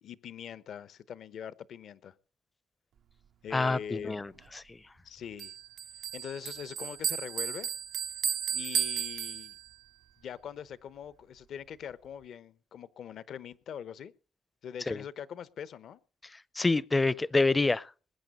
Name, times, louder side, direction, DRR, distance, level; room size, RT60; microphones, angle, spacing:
voice 1, 0.0-2.1 3.4-4.4 5.0-5.5 6.1-7.7 8.5-9.6 10.2-14.1 14.6-16.0, left 8 dB, 65° left, 0.8 m, -42 dB
voice 2, 3.5-4.3 14.9-15.0 16.6-17.9, left 3 dB, 20° left, 0.6 m, -26 dB
Bell, 5.4-9.9, right 9 dB, 70° right, 0.7 m, -34 dB
20.5 x 8.8 x 5.3 m
cardioid pair, 90°, 0 cm